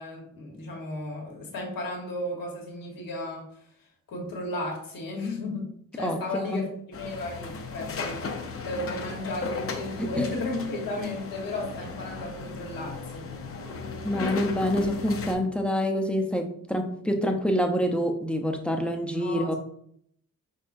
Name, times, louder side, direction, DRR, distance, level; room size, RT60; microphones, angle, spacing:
voice 1, 0.0-3.6 4.1-8.3 8.6-13.3 19.1-19.5, left 2 dB, 90° left, -1 dB, 1.3 m, -34 dB
sound 1, 6.9-15.3, left 4 dB, 45° left, 0.6 m, -36 dB
voice 2, 14.0-19.5, equal, 5° left, 3 dB, 0.6 m, -26 dB
5.2 x 3.7 x 2.5 m, 0.68 s
wide cardioid pair, 115°, 33 cm